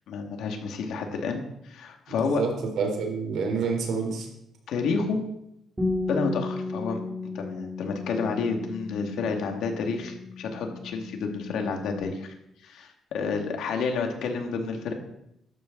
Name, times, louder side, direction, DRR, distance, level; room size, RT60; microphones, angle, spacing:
voice 1, 0.1-2.4 4.7-5.2 6.1-7.0 7.3-12.3 12.6-14.9, left 4 dB, 80° left, 3 dB, 2.4 m, -30 dB
voice 2, 2.1-4.3, right 5 dB, 75° right, 2 dB, 4.0 m, -28 dB
Bass guitar, 5.8-12.0, left 3 dB, 15° right, 3.3 m, -34 dB
12.5 x 12.0 x 4.1 m, 0.81 s
cardioid pair, 90°, 0 cm